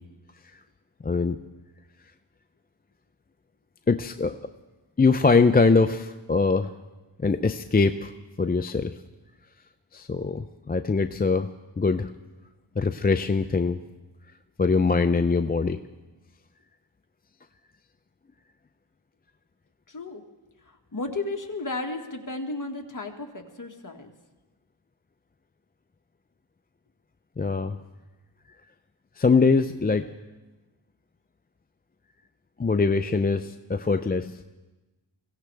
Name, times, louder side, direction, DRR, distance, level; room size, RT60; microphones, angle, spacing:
voice 1, 1.0-1.4 3.9-4.4 5.0-6.7 7.2-8.1 8.4-8.9 9.9-11.5 11.8-12.1 12.8-13.8 14.6-15.8 27.4-27.8 29.2-30.1 32.6-34.3, left 4 dB, 20° left, 9 dB, 0.5 m, -22 dB
voice 2, 19.9-20.2 20.7-24.1, left 2 dB, 40° left, 3 dB, 1.8 m, -34 dB
22.5 x 17.0 x 3.4 m, 1.1 s
cardioid pair, 55°, 49 cm